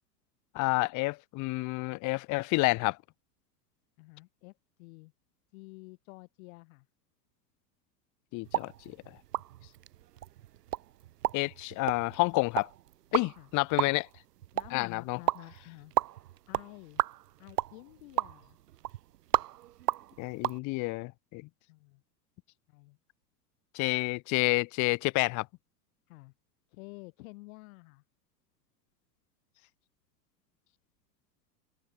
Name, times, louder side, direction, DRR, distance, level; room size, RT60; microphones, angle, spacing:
voice 1, 0.5-3.0 8.3-9.0 11.3-12.7 13.1-14.1 14.7-15.2 20.2-21.5 23.7-25.5, left 24 dB, 35° left, 0.9 m, -29 dB
voice 2, 4.0-5.1 5.5-6.9 13.4-13.5 14.5-15.9 16.5-17.0 17.4-18.6 21.7-22.0 22.7-23.0 26.1-26.3 26.7-28.0, left 25 dB, 55° left, 5.9 m, -50 dB
sound 1, 8.4-20.6, right 13 dB, 70° right, 2.9 m, -35 dB
open air
hypercardioid pair, 95°, 49 cm